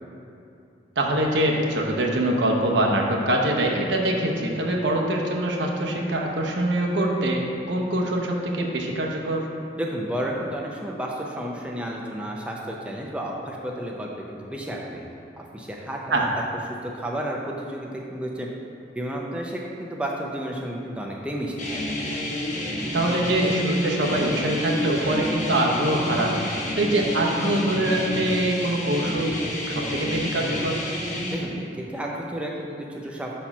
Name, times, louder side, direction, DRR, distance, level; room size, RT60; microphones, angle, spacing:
voice 1, 1.0-9.5 16.1-16.3 22.9-26.4 26.8-29.3 29.7-30.8, right 1 dB, 85° right, -1 dB, 0.9 m, -24 dB
voice 2, 9.8-16.3 16.8-18.5 18.9-21.8 31.3-33.3, right 1 dB, 5° right, -2 dB, 0.5 m, -32 dB
sound 1, 21.6-31.4, left 1 dB, 40° left, 1.0 m, -29 dB
5.6 x 4.4 x 5.9 m, 2.7 s
head